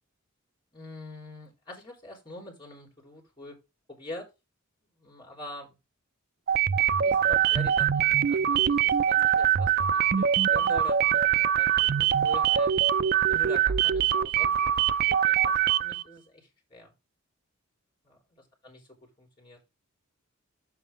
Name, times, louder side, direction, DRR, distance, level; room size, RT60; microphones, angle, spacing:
voice 1, 0.7-3.6 3.9-4.3 4.9-5.8 6.8-12.7 13.3-14.5 15.1-16.9 18.0-18.8 19.2-19.6, left 2 dB, 25° left, 0 dB, 3.9 m, -45 dB
sound 1, 6.5-16.0, right 9 dB, 45° right, 0.4 m, -23 dB
7.6 x 7.2 x 3.8 m, 0.24 s
head